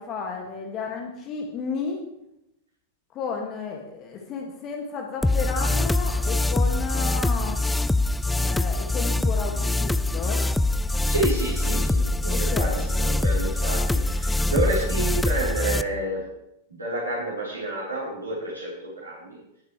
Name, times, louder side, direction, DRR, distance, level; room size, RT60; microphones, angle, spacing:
voice 1, 0.0-2.0 3.1-7.6 8.3-10.4 12.3-12.9, left 5 dB, 35° left, 1 dB, 1.9 m, -32 dB
sound 1, 5.2-15.8, left 2 dB, 5° left, 0.4 m, -24 dB
voice 2, 11.1-16.2 16.8-19.4, right 2 dB, 80° right, -7 dB, 4.0 m, -29 dB
20.5 x 6.9 x 3.2 m, 0.83 s
figure-of-eight pair, 90°, 0 cm